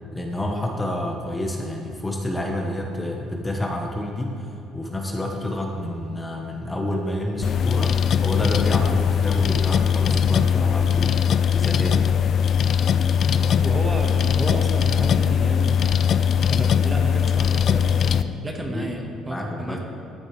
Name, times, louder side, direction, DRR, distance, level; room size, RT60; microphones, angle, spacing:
voice 1, 0.1-7.9 8.2-12.0 18.7-18.9 19.3-19.8, left 1 dB, 15° left, 1 dB, 1.0 m, -28 dB
sound 1, 7.4-18.2, left 7 dB, 55° left, 0.3 m, -20 dB
voice 2, 13.4-16.1 16.5-19.8, right 1 dB, 25° right, 2 dB, 1.3 m, -32 dB
13.0 x 8.0 x 3.2 m, 2.8 s
supercardioid pair, 85°, 0 cm